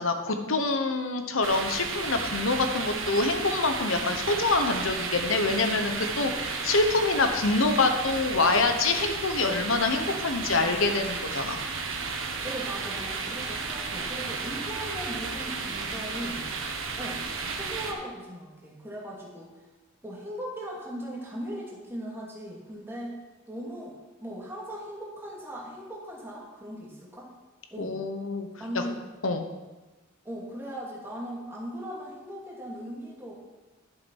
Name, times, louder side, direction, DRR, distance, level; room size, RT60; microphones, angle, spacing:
voice 1, 0.0-11.6 27.8-28.5 29.2-29.5, left 3 dB, 85° left, 6 dB, 1.1 m, -26 dB
sound 1, 1.4-17.9, right 4 dB, 75° right, 1.4 m, -33 dB
voice 2, 12.4-16.4 17.0-17.2 17.5-19.5 20.0-23.2 23.5-27.3 27.7-28.0 28.6-29.0 30.2-33.3, equal, 10° right, -4 dB, 2.5 m, -38 dB
11.5 x 7.3 x 5.5 m, 1.2 s
head